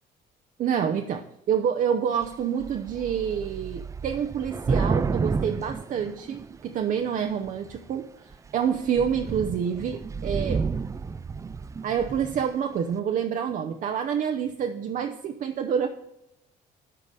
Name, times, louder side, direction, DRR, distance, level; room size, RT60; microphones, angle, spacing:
voice 1, 0.6-8.1 8.5-10.6 11.8-15.9, right 8 dB, 50° right, 5 dB, 0.7 m, -27 dB
Thunder / Rain, 2.2-2.4 2.6-6.7 7.5-7.9 8.3-8.5 8.7-12.5, right 5 dB, 20° right, 0.3 m, -30 dB
11.0 x 3.9 x 6.7 m, 0.85 s
cardioid pair, 110°, 17 cm